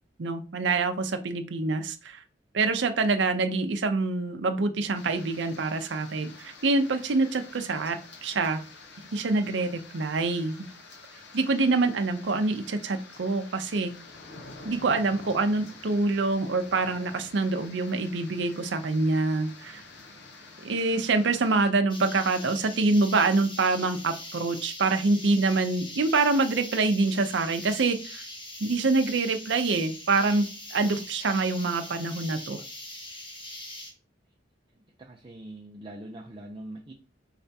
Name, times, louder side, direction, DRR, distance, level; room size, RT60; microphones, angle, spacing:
voice 1, 0.2-2.2 2.5-8.6 9.1-10.7 11.3-13.9 14.6-19.8 20.6-28.2 28.6-30.5 30.7-32.6, right 3 dB, 70° right, 7 dB, 0.6 m, -26 dB
sound 1, 4.9-21.7, left 3 dB, 70° left, 0.8 m, -48 dB
sound 2, 21.9-33.9, left 1 dB, 25° left, 1.0 m, -42 dB
voice 2, 34.8-36.9, right 1 dB, 25° right, -1 dB, 0.5 m, -43 dB
4.8 x 3.4 x 2.8 m, 0.35 s
head